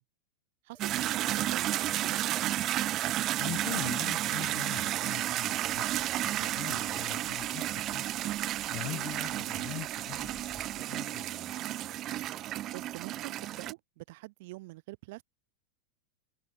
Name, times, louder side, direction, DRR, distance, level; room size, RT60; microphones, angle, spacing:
voice 1, 0.6-2.2 8.8-9.1 12.4-15.2, right 21 dB, 50° right, 4.0 m, -45 dB
sound 1, 0.7-1.2 1.7-2.2 4.7-5.2 5.7-6.2, left 2 dB, 5° left, 7.7 m, -62 dB
sound 2, 0.8-13.7, right 14 dB, 35° right, 2.0 m, -32 dB
voice 2, 3.4-5.9 6.1-8.1 8.7-11.6, left 20 dB, 40° left, 7.9 m, -42 dB
sound 3, 5.6-10.8, right 3 dB, 10° right, 6.9 m, -57 dB
open air
figure-of-eight pair, 90°, 0 cm